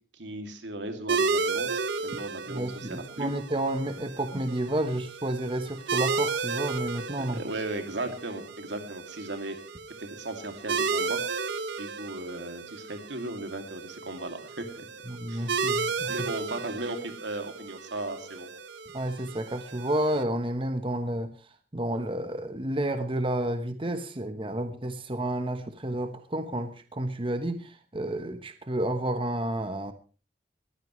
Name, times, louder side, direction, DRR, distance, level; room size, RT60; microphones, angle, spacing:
voice 1, 0.1-3.3 7.2-9.6 10.0-11.2 11.8-14.9 15.3-15.5 16.1-18.5, right 2 dB, 90° right, 6 dB, 2.6 m, -36 dB
sound 1, 1.1-20.2, right 4 dB, 75° right, 0.8 m, -33 dB
voice 2, 2.5-7.4 15.1-16.1 18.9-21.3 21.7-29.9, right 1 dB, 30° right, 8 dB, 1.1 m, -30 dB
21.0 x 15.0 x 3.2 m, 0.35 s
head